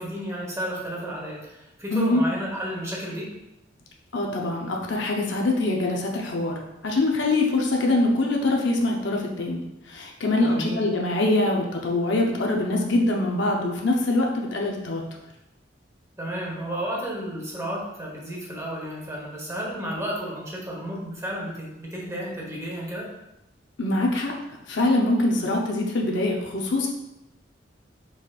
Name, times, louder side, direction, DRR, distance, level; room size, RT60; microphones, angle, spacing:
voice 1, 0.0-3.3 10.4-10.8 16.2-23.1, equal, 15° right, -4 dB, 1.1 m, -32 dB
voice 2, 1.9-2.2 4.1-6.5 6.8-15.0 23.8-24.3 24.7-26.9, left 2 dB, 70° left, 0 dB, 0.7 m, -24 dB
4.9 x 3.9 x 2.4 m, 0.91 s
head